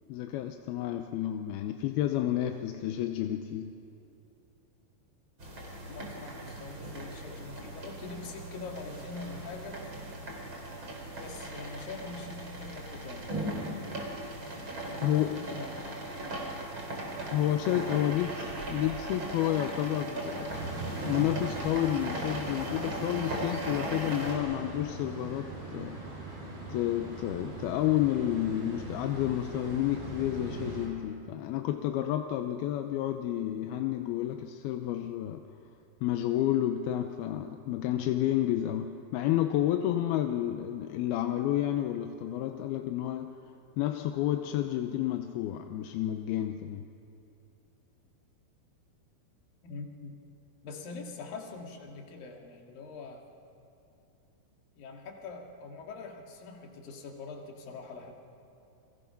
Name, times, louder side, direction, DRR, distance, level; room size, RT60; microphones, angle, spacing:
voice 1, 0.1-3.7 15.0-15.4 17.3-18.3 18.7-20.6 21.0-26.1 26.7-35.5 36.0-43.4 43.8-46.9, left 12 dB, 80° left, 6 dB, 2.6 m, -30 dB
sound 1, 5.4-24.4, right 1 dB, 30° right, 4.0 m, -38 dB
voice 2, 5.9-9.8 11.2-13.3 14.9-15.9 17.9-18.3 49.6-50.2 50.6-53.2 54.8-58.1, left 4 dB, 65° left, 1 dB, 3.7 m, -43 dB
sound 2, 20.5-30.9, right 2 dB, 75° right, 6.9 m, -41 dB
29.5 x 22.5 x 5.9 m, 2.8 s
omnidirectional pair, 4.6 m